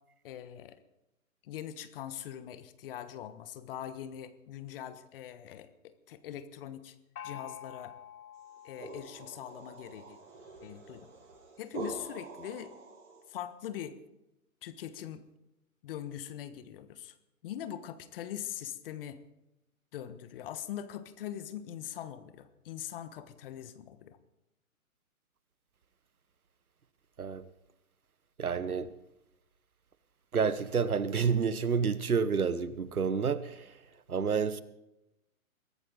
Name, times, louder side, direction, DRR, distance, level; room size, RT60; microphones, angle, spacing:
voice 1, 0.2-0.8 1.4-7.0 7.2-8.0 8.6-10.2 10.6-11.1 11.6-12.7 13.3-14.0 14.6-15.2 15.8-17.1 17.4-19.2 19.9-24.2, left 10 dB, 40° left, 1.3 m, -42 dB
Gong, 7.2-10.7, left 9 dB, 85° left, 1.0 m, -49 dB
sound 1, 8.4-13.4, right 3 dB, 55° right, 6.4 m, -45 dB
voice 2, 28.4-28.9 30.3-33.7 34.1-34.6, right 6 dB, 90° right, 1.2 m, -29 dB
22.5 x 14.0 x 3.9 m
hypercardioid pair, 130°, 43 cm